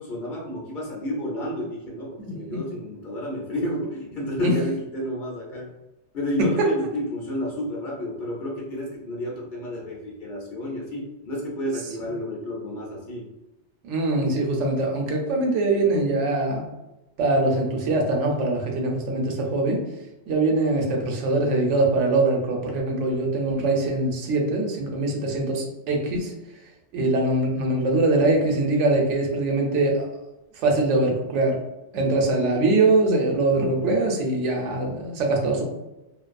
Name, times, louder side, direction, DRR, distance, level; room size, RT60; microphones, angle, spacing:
voice 1, 0.0-5.7 6.1-13.3 32.0-32.6, left 1 dB, 55° left, -2 dB, 0.6 m, -31 dB
voice 2, 2.2-2.6 4.4-4.5 6.6-6.7 13.8-16.7 17.2-19.8 20.3-26.3 26.9-30.1 30.6-31.6 31.9-35.6, right 2 dB, 85° right, 1 dB, 1.0 m, -23 dB
2.5 x 2.2 x 2.4 m, 0.99 s
omnidirectional pair, 1.2 m